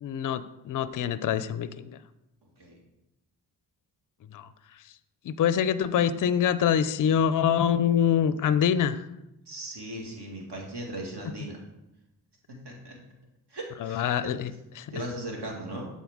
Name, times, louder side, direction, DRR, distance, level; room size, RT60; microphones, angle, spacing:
voice 1, 0.0-2.0 4.3-4.5 5.2-9.1 13.8-14.5 14.8-15.0, left 8 dB, 45° left, 14 dB, 0.4 m, -25 dB
voice 2, 2.4-2.8 9.5-11.6 12.5-13.0 13.5-14.3 14.9-15.8, right 1 dB, 60° right, -1 dB, 1.9 m, -38 dB
7.0 x 4.2 x 3.6 m, 0.91 s
supercardioid pair, 45°, 46 cm